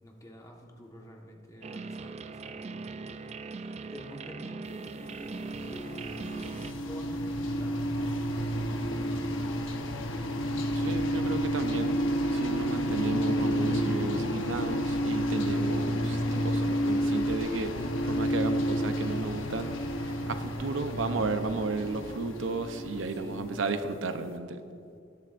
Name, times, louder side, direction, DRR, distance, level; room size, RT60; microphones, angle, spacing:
voice 1, 0.0-6.5 6.9-9.6 20.6-21.1 23.2-23.5, equal, 15° left, 0 dB, 1.3 m, -47 dB
sound 1, 1.6-6.7, right 4 dB, 35° right, 0.4 m, -40 dB
sound 2, 5.0-24.0, equal, 80° left, 1.0 m, -30 dB
voice 2, 10.8-11.9 12.3-17.7 18.1-19.7 20.0-24.6, right 3 dB, 75° right, 8 dB, 0.7 m, -33 dB
20.5 x 10.5 x 2.5 m, 2.4 s
head